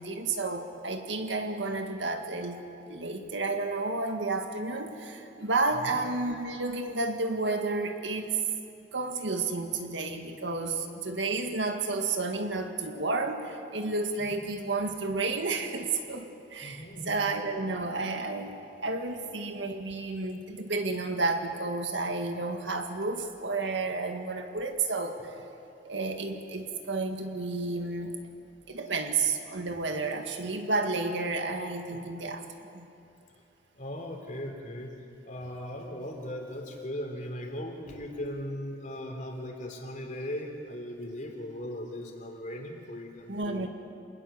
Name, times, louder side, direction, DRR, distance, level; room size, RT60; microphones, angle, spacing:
voice 1, 0.0-2.6 2.9-8.3 8.9-25.3 25.8-28.2 28.7-32.9 43.3-43.7, right 3 dB, 85° right, 5 dB, 1.9 m, -31 dB
voice 2, 16.6-17.2 31.9-32.0 33.7-34.9 35.2-43.7, left 1 dB, 45° left, 2 dB, 3.4 m, -38 dB
26.5 x 19.0 x 7.0 m, 2.6 s
head